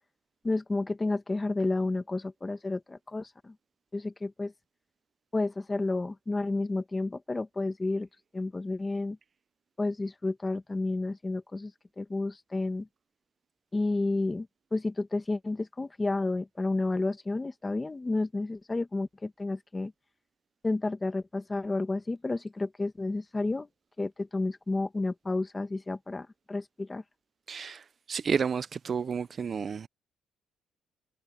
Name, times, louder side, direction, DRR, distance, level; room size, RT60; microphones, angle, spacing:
voice 1, 0.4-3.5 3.9-4.5 5.3-8.1 8.3-9.2 9.8-11.7 12.0-12.9 13.7-14.5 14.7-19.9 20.6-23.7 24.0-27.0, left 2 dB, 15° left, 1.4 m, -31 dB
voice 2, 27.5-29.9, right 6 dB, 35° right, 0.4 m, -31 dB
cardioid pair, 150°, 0 cm